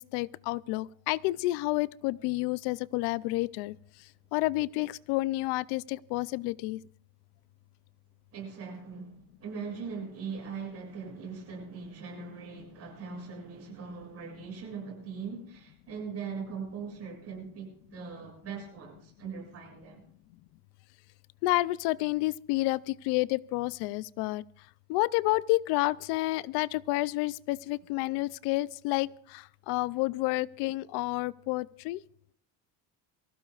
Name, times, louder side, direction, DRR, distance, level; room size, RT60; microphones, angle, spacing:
voice 1, 0.0-6.8 21.4-24.4 24.9-32.0, left 19 dB, 75° left, 0.5 m, -30 dB
voice 2, 8.3-20.0, right 5 dB, 35° right, 7.4 m, -40 dB
24.0 x 15.5 x 2.4 m
cardioid pair, 165°, 40 cm